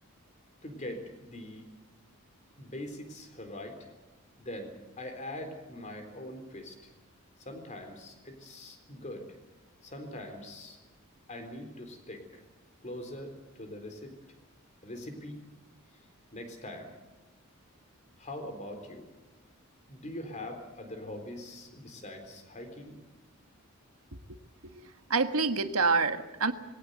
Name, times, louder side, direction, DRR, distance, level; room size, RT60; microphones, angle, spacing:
voice 1, 0.6-1.7 2.6-3.9 4.4-6.9 7.4-9.4 9.8-10.8 11.3-12.4 12.8-14.1 14.8-15.4 16.3-16.9 18.2-19.1 19.9-23.0, left 1 dB, 35° left, 5 dB, 4.0 m, -42 dB
voice 2, 24.7-26.5, right 4 dB, 90° right, 8 dB, 1.5 m, -27 dB
21.0 x 17.5 x 8.1 m, 1.1 s
head